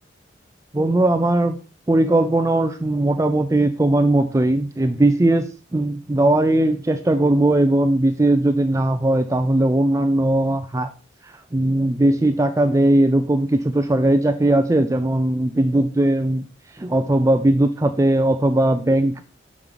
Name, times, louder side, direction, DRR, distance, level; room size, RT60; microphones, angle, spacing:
voice 1, 0.7-1.6 1.9-10.9 11.5-16.5 16.8-19.2, right 1 dB, 15° right, 8 dB, 0.4 m, -19 dB
6.1 x 5.1 x 3.7 m, 0.36 s
head